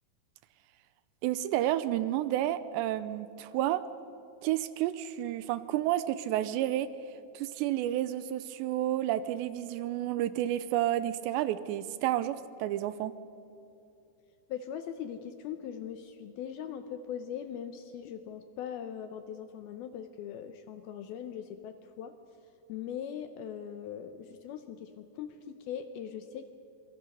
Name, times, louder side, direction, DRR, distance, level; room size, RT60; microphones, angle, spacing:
voice 1, 1.2-3.8 4.4-6.9 7.3-13.1, right 13 dB, 85° right, 14 dB, 2.9 m, -30 dB
voice 2, 14.5-22.2 22.7-26.5, left 8 dB, 75° left, 8 dB, 2.3 m, -40 dB
26.0 x 23.0 x 5.5 m, 2.8 s
omnidirectional pair, 5.1 m